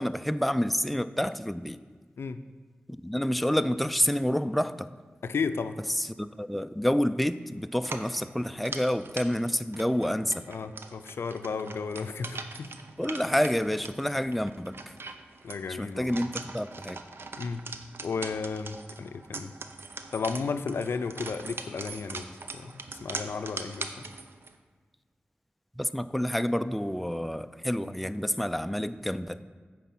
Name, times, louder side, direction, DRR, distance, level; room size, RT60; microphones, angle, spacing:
voice 1, 0.0-1.8 2.9-4.9 5.9-10.4 13.0-14.9 15.7-17.0 25.8-29.4, equal, ahead, 11 dB, 0.3 m, -28 dB
voice 2, 5.2-5.8 10.5-12.7 15.4-16.2 17.4-17.6 18.0-19.5 20.1-22.3 22.5-23.9, left 5 dB, 85° left, 10 dB, 0.4 m, -33 dB
sound 1, 7.8-24.6, right 3 dB, 75° right, 0.6 m, -42 dB
9.0 x 4.8 x 6.0 m, 1.5 s
cardioid pair, 50°, 4 cm